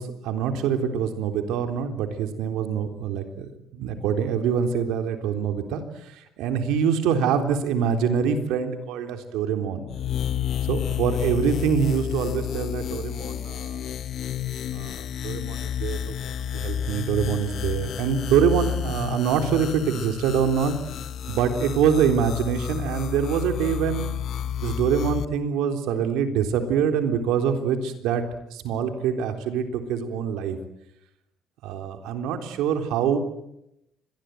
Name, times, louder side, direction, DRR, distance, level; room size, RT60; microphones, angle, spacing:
voice 1, 0.0-9.8 10.6-13.9 14.7-15.0 15.2-16.1 16.5-20.7 21.3-24.1 24.6-28.2 28.5-30.6 31.6-33.2, right 7 dB, 85° right, 6 dB, 3.6 m, -25 dB
sound 1, 9.9-25.3, left 9 dB, 55° left, 1.1 m, -30 dB
25.0 x 19.5 x 9.2 m, 0.84 s
cardioid pair, 130°, 0 cm